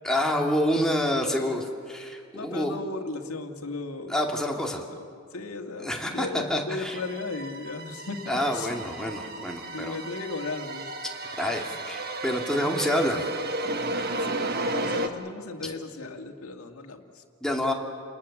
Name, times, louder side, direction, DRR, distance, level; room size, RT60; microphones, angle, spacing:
voice 1, 0.0-2.8 4.1-4.8 5.8-7.0 8.3-10.0 11.4-13.2 14.0-14.1 15.6-15.7 17.4-17.7, left 1 dB, 5° left, 0 dB, 2.4 m, -27 dB
voice 2, 2.3-4.1 4.9-5.0 5.3-8.8 9.7-10.9 14.2-17.2, left 3 dB, 80° left, 4 dB, 1.9 m, -36 dB
sound 1, 6.9-15.1, right 2 dB, 45° right, 1.4 m, -33 dB
29.5 x 20.0 x 7.2 m, 2.2 s
head